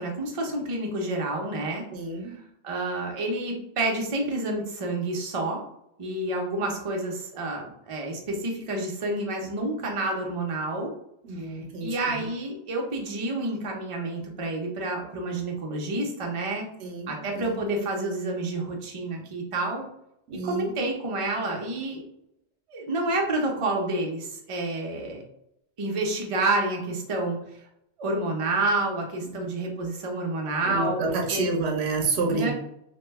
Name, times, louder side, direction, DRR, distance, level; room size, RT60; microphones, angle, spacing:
voice 1, 0.0-1.9 2.3-5.6 6.0-10.9 11.4-16.7 17.1-19.9 20.3-22.0 22.7-25.2 25.8-27.4 28.0-31.5 32.3-32.5, right 2 dB, 40° right, 0 dB, 0.6 m, -29 dB
voice 2, 1.9-2.3 11.2-12.3 16.8-17.6 20.3-20.7 29.3-29.4 30.7-32.5, right 3 dB, 80° right, 1 dB, 0.9 m, -29 dB
2.9 x 2.1 x 3.3 m, 0.77 s
omnidirectional pair, 1.1 m